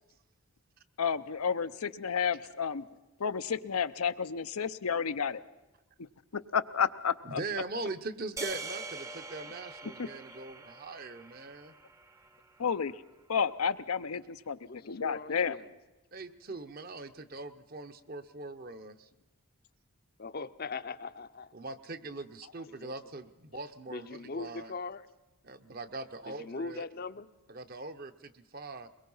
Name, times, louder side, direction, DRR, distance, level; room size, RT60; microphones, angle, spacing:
voice 1, 1.0-2.8 3.2-5.4 6.5-7.4 10.0-10.1 12.6-12.9 13.3-14.6 14.9-15.6, left 6 dB, 85° left, 11 dB, 0.7 m, -31 dB
voice 2, 7.2-11.7 16.1-19.1 21.5-24.7 25.4-26.8 27.5-28.9, right 3 dB, 45° right, 10 dB, 0.9 m, -41 dB
sound 1, 8.4-12.7, right 3 dB, 15° right, 0.7 m, -44 dB
voice 3, 14.7-15.7 20.2-21.5 22.8-22.9 23.9-25.1 26.3-27.3, left 4 dB, 45° left, 12 dB, 0.7 m, -40 dB
22.0 x 22.0 x 5.6 m, 1.1 s
head